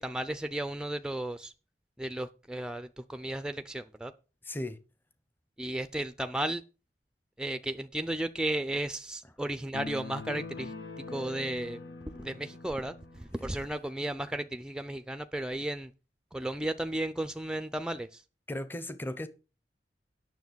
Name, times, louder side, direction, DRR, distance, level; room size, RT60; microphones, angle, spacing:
voice 1, 0.0-1.5 2.0-4.1 5.6-6.6 7.4-10.7 11.1-11.8 12.2-15.9 16.3-18.2, right 1 dB, 5° right, 0.5 m, -34 dB
voice 2, 4.4-4.8 18.5-19.3, left 1 dB, 10° left, 0.8 m, -36 dB
sound 1, 9.7-13.3, left 3 dB, 80° left, 1.5 m, -43 dB
9.5 x 6.7 x 6.2 m
head